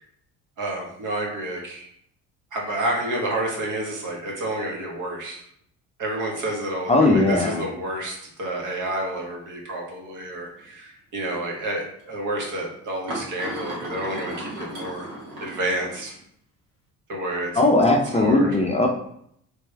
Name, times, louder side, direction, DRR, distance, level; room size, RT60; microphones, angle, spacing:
voice 1, 0.6-1.9 2.5-5.4 6.0-15.1 15.4-16.1 17.1-17.5 18.1-18.6, right 1 dB, 55° right, -1 dB, 1.4 m, -29 dB
voice 2, 6.9-7.6 17.6-18.9, left 2 dB, 20° left, 0 dB, 0.5 m, -18 dB
sound 1, 9.1-9.4 10.6-10.7 12.0-12.1 13.1-16.2, right 1 dB, 80° right, 1.6 m, -35 dB
3.4 x 3.1 x 3.4 m, 0.70 s
supercardioid pair, 85°, 36 cm